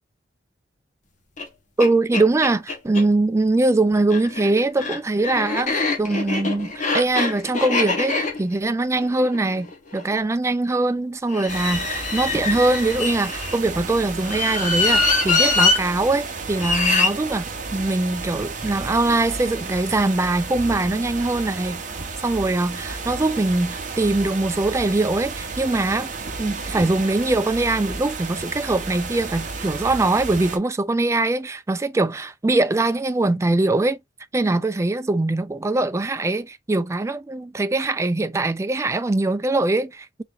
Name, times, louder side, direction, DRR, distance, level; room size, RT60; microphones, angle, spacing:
sound 1, 1.4-1.5 1.8-3.0 4.0-10.1 11.3-13.6 14.2-15.8 16.6-17.1, left 3 dB, 40° left, 1.3 m, -23 dB
voice 1, 1.8-9.7 9.9-17.5 17.7-21.8 22.2-26.1 26.4-34.0 34.3-40.2, right 2 dB, 15° right, 0.3 m, -22 dB
sound 2, 11.5-30.6, right 4 dB, 45° right, 0.9 m, -32 dB
4.0 x 3.9 x 2.5 m
head